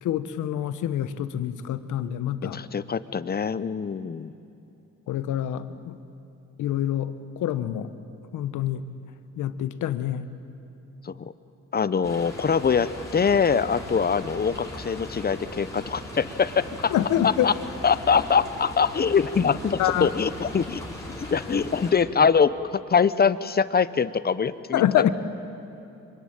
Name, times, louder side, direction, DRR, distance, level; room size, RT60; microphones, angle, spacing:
voice 1, 0.0-2.6 5.1-6.0 6.6-7.9 8.3-8.8 9.4-10.3 16.9-17.5 19.8-20.1 24.7-25.1, left 11 dB, 80° left, 12 dB, 1.2 m, -26 dB
voice 2, 2.5-4.3 11.0-11.3 11.7-16.9 17.2-17.5 17.8-20.8 21.3-22.5 22.9-24.8, left 6 dB, 30° left, 15 dB, 0.9 m, -23 dB
sound 1, 12.0-21.9, left 1 dB, 10° left, 6.3 m, -39 dB
25.5 x 24.5 x 8.9 m, 2.7 s
cardioid pair, 90°, 30 cm